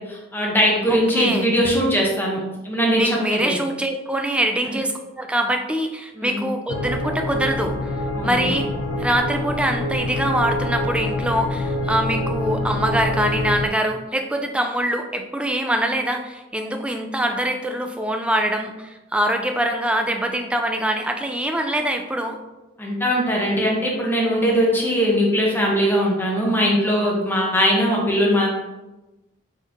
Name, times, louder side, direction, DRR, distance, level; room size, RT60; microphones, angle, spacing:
voice 1, 0.0-3.6 4.7-4.8 6.1-6.5 8.1-8.5 22.8-28.5, equal, 10° left, -2 dB, 0.9 m, -20 dB
voice 2, 0.9-1.5 3.0-7.7 8.2-8.7 9.0-22.4, right 1 dB, 5° right, 4 dB, 0.3 m, -24 dB
sound 1, 6.7-13.7, left 1 dB, 85° left, 0.5 m, -26 dB
4.1 x 3.1 x 3.7 m, 1.1 s
head